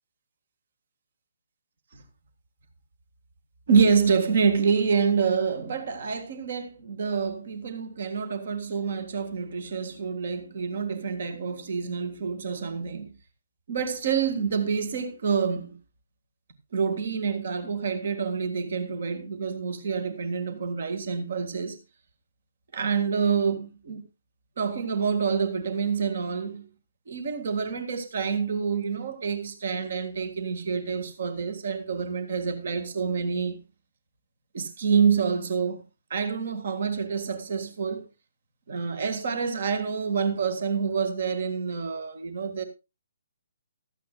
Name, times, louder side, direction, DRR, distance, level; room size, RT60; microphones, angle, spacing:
voice 1, 3.7-13.1 13.7-15.8 16.7-21.8 22.7-24.0 24.6-26.7 27.1-33.6 34.5-35.8 36.1-38.1 38.7-42.6, right 6 dB, 55° right, 1.7 m, -27 dB
15.5 x 13.0 x 2.3 m
figure-of-eight pair, 135°, 0 cm